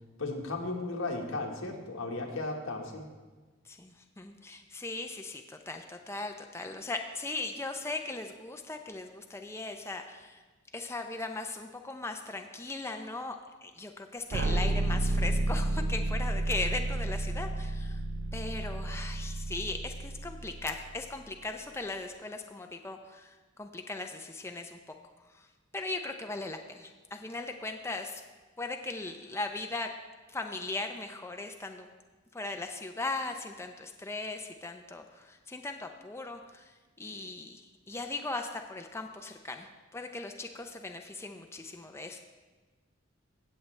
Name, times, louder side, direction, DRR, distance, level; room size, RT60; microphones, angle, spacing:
voice 1, 0.2-3.1, left 2 dB, 85° left, 1 dB, 1.5 m, -35 dB
voice 2, 3.7-10.4 10.7-13.4 13.6-18.0 18.3-24.8 25.3-25.5 25.7-28.2 28.6-29.9 30.3-31.9 32.3-36.7 37.0-42.2, left 3 dB, 15° left, 4 dB, 0.5 m, -38 dB
sound 1, 14.3-21.2, right 2 dB, 55° right, 0.5 m, -31 dB
16.0 x 7.4 x 3.3 m, 1.3 s
head